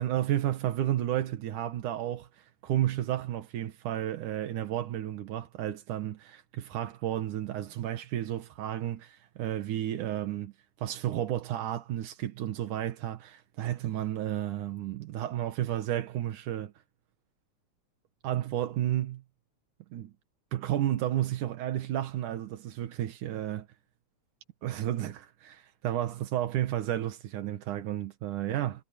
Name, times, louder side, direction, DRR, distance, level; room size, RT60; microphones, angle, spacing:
voice 1, 0.0-10.5 10.8-16.7 18.2-19.2 19.9-20.1 20.5-23.7 24.6-28.7, right 12 dB, 90° right, 2.9 m, -32 dB
omnidirectional pair, 3.5 m